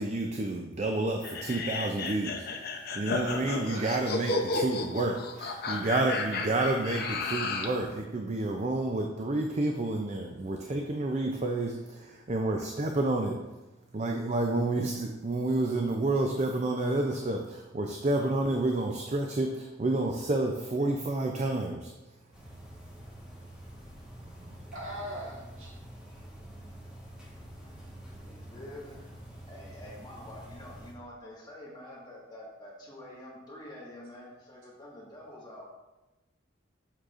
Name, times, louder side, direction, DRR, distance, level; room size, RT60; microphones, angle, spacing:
voice 1, 0.0-2.7 2.9-13.3 13.9-21.9, right 2 dB, 35° right, 2 dB, 0.5 m, -29 dB
sound 1, 1.2-7.8, left 3 dB, 50° left, 0.6 m, -33 dB
voice 2, 3.7-4.3 24.7-25.7, right 1 dB, 90° right, -6 dB, 1.8 m, -40 dB
sound 2, 22.3-30.9, right 1 dB, 5° right, 1.3 m, -47 dB
voice 3, 28.2-29.0 29.5-35.6, left 1 dB, 20° left, -5 dB, 1.6 m, -47 dB
7.3 x 6.4 x 2.5 m, 1.1 s
head